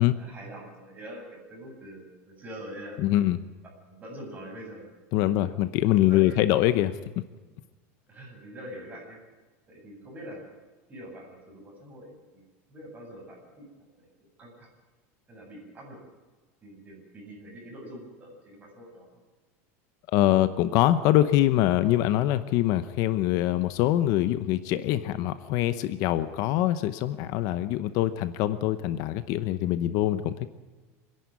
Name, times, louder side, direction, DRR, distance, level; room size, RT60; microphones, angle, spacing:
voice 1, 0.0-3.0 3.9-4.9 5.2-5.4 5.9-6.5 8.1-9.2 9.7-10.4 10.9-12.4 12.7-13.7 14.0-14.1 14.4-14.7 15.3-16.0 16.6-19.1, equal, 20° right, -1 dB, 7.9 m, -44 dB
voice 2, 3.0-3.4 5.1-7.0 20.1-30.5, left 14 dB, 50° left, 13 dB, 0.9 m, -24 dB
26.0 x 11.0 x 9.6 m, 1.3 s
supercardioid pair, 150°, 8 cm